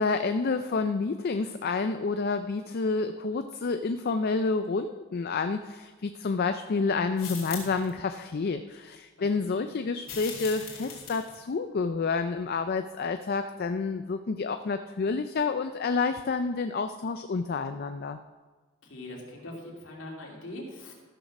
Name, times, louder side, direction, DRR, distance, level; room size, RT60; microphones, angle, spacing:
voice 1, 0.0-18.2, left 4 dB, 50° left, 8 dB, 0.4 m, -29 dB
sound 1, 7.2-7.9 10.0-11.4, left 6 dB, 85° left, 2.8 m, -40 dB
voice 2, 18.8-20.9, left 1 dB, 65° left, -2 dB, 2.7 m, -42 dB
14.0 x 6.5 x 6.0 m, 1.3 s
head